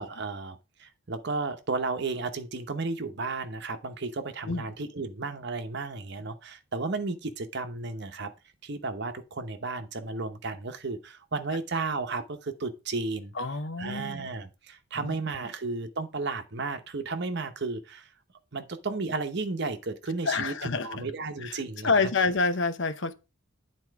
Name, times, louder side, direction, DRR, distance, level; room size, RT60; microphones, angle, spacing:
voice 1, 0.0-8.3 8.6-13.3 13.8-18.1 18.5-21.9, right 3 dB, 55° right, 0.9 m, -33 dB
voice 2, 13.3-14.2 14.9-15.2 20.3-20.9 21.4-21.6 21.8-23.1, left 4 dB, 60° left, 0.8 m, -27 dB
8.8 x 4.4 x 4.7 m
head